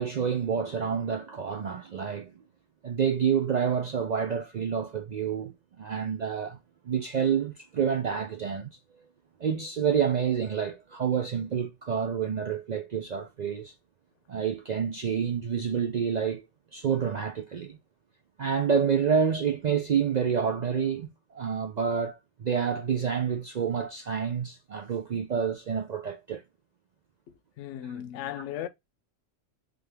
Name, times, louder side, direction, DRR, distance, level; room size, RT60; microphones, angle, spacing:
voice 1, 0.0-2.3 2.8-6.6 6.9-8.8 9.4-13.7 14.3-16.4 16.7-17.8 18.4-26.4, right 7 dB, 65° right, 0.4 m, -28 dB
voice 2, 27.6-28.7, left 11 dB, 75° left, 0.9 m, -36 dB
3.4 x 3.4 x 3.3 m
omnidirectional pair, 1.3 m